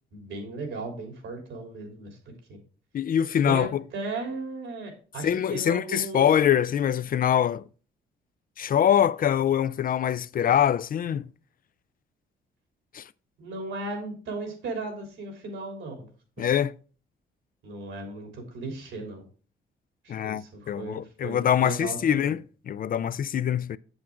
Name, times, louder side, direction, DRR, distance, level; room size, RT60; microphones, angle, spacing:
voice 1, 0.1-2.2 2.5-2.6 3.4-6.4 13.4-16.1 17.6-19.2 20.0-22.3, right 3 dB, 80° right, 3.4 m, -36 dB
voice 2, 2.9-3.8 5.2-7.6 8.6-11.3 12.9-13.1 16.4-16.7 20.1-22.4 22.7-23.8, left 9 dB, 45° left, 0.4 m, -24 dB
7.9 x 7.5 x 3.7 m
cardioid pair, 90°, 20 cm